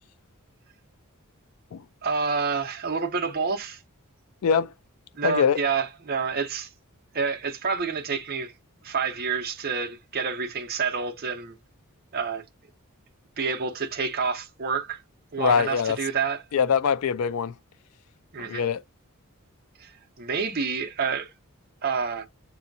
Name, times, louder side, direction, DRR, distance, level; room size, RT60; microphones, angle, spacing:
voice 1, 2.0-3.8 5.1-6.7 7.1-8.5 8.8-11.5 12.1-12.4 13.4-15.0 15.3-16.4 18.3-18.7 19.8-19.9 20.2-21.3 21.8-22.2, right 5 dB, 45° right, 0.7 m, -28 dB
voice 2, 5.2-5.6 15.4-16.0 16.5-17.5 18.4-18.8, left 6 dB, 75° left, 0.3 m, -23 dB
7.1 x 2.7 x 2.6 m
head